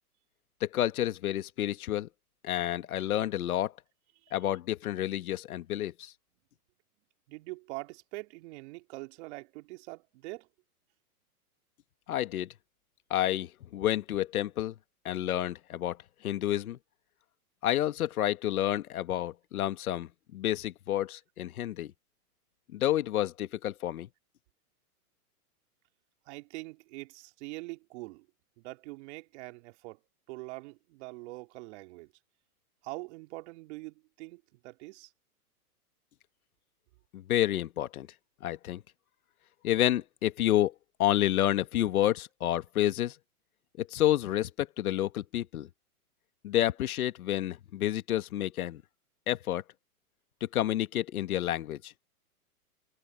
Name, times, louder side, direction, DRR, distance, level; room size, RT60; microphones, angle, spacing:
voice 1, 0.6-2.1 2.4-3.7 4.3-6.1 12.1-12.5 13.1-14.8 15.1-16.0 16.2-16.8 17.6-21.9 22.7-24.1 37.1-38.1 38.4-38.8 39.6-40.7 41.0-43.2 43.8-45.7 46.4-48.8 49.3-49.6 50.4-51.9, left 13 dB, 70° left, 1.6 m, -29 dB
voice 2, 7.3-10.5 26.3-28.3 28.6-30.0 30.3-32.1 32.8-35.1, right 23 dB, 45° right, 2.9 m, -43 dB
hypercardioid pair, 125°, 45 cm